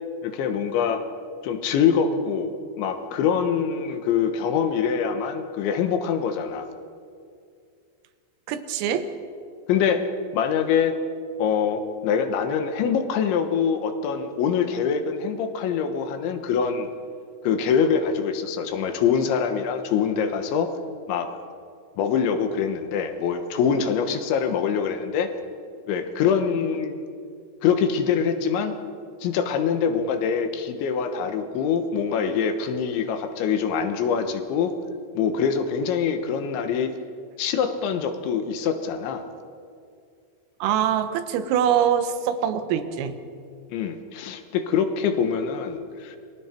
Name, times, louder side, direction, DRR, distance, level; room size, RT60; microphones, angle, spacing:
voice 1, 0.2-1.0 1.4-6.7 9.7-10.1 10.3-10.9 11.4-16.9 17.4-20.7 21.1-21.3 22.0-25.3 25.9-27.0 27.6-28.7 29.2-34.7 35.1-36.9 37.4-39.2 43.7-46.2, left 7 dB, 75° left, 7 dB, 3.4 m, -24 dB
voice 2, 8.5-9.1 40.6-43.2, right 9 dB, 90° right, 9 dB, 3.9 m, -23 dB
29.0 x 24.0 x 4.5 m, 2.3 s
omnidirectional pair, 5.8 m